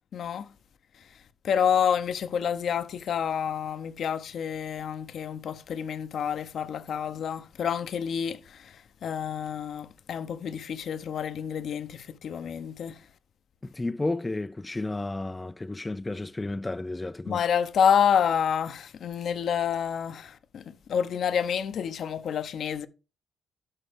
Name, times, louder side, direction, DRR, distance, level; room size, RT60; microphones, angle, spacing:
voice 1, 0.1-0.5 0.9-13.1 17.2-22.9, left 8 dB, 60° left, 0.7 m, -28 dB
voice 2, 13.6-17.4, left 2 dB, 15° left, 0.3 m, -32 dB
9.8 x 5.8 x 3.5 m
cardioid pair, 90°, 0 cm